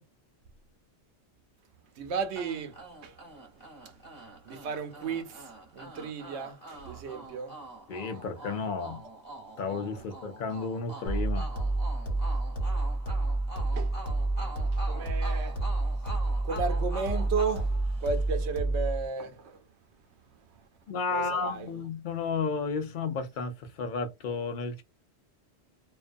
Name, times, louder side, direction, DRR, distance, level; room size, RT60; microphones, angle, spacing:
voice 1, 2.0-3.2 4.4-7.6 13.7-14.0 14.3-15.6 16.4-19.6 21.1-21.8, right 5 dB, 85° right, 0.9 m, -34 dB
sound 1, 2.3-18.5, right 2 dB, 10° left, 1.0 m, -45 dB
voice 2, 7.9-9.0 9.6-11.5 20.9-24.8, left 4 dB, 60° left, 0.6 m, -32 dB
sound 2, 11.1-19.1, right 2 dB, 80° left, 1.2 m, -29 dB
2.4 x 2.2 x 2.5 m
omnidirectional pair, 1.1 m